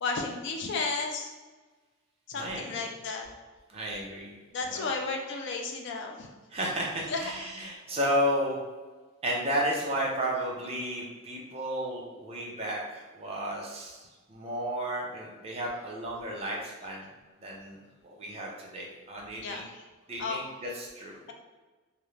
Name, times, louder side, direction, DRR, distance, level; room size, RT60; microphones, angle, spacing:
voice 1, 0.0-1.3 2.3-3.3 4.5-6.3 7.1-7.2 19.4-19.6 20.2-20.4, left 4 dB, 55° left, 2 dB, 0.3 m, -33 dB
voice 2, 2.3-2.9 3.7-4.3 4.7-4.9 6.5-8.6 9.2-17.1 17.4-19.6 20.1-21.2, equal, 30° right, -2 dB, 0.5 m, -33 dB
2.4 x 2.0 x 3.0 m, 1.3 s
head